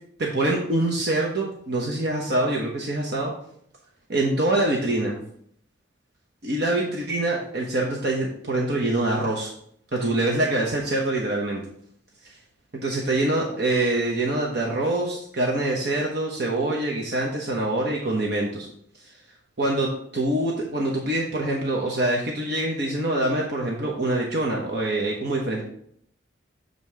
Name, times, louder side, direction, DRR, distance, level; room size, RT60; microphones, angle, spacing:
voice 1, 0.2-3.3 4.1-5.2 6.4-9.5 9.9-11.6 12.2-12.3 12.8-18.7 19.6-25.6, right 2 dB, 55° right, -2 dB, 1.1 m, -25 dB
7.6 x 4.0 x 4.8 m, 0.66 s
head